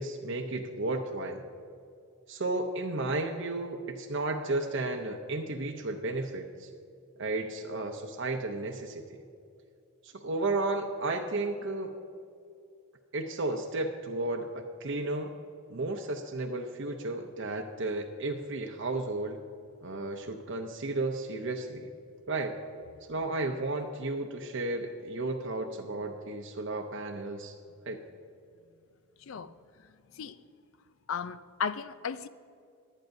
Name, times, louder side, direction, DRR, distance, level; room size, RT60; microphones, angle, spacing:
voice 1, 0.0-1.5 2.3-6.7 7.2-9.2 10.0-11.9 13.1-15.3 15.7-19.4 19.8-21.9 22.3-22.6 23.1-27.6 27.9-28.0, right 2 dB, 55° right, 0.6 m, -33 dB
voice 2, 31.1-32.3, left 6 dB, 65° left, 0.4 m, -35 dB
22.0 x 9.0 x 2.7 m
head